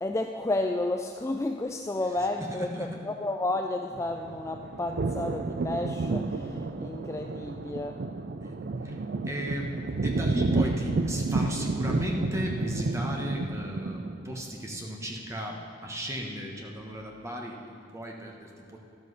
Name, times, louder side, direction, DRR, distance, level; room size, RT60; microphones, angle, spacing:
voice 1, 0.0-8.0 10.6-10.7, left 2 dB, 15° left, 4 dB, 0.3 m, -31 dB
voice 2, 2.4-3.0 8.4-9.0 9.3-18.8, equal, 15° right, 0 dB, 1.2 m, -35 dB
sound 1, 3.9-14.4, right 3 dB, 55° right, 0.5 m, -31 dB
12.5 x 12.0 x 4.1 m, 2.6 s
head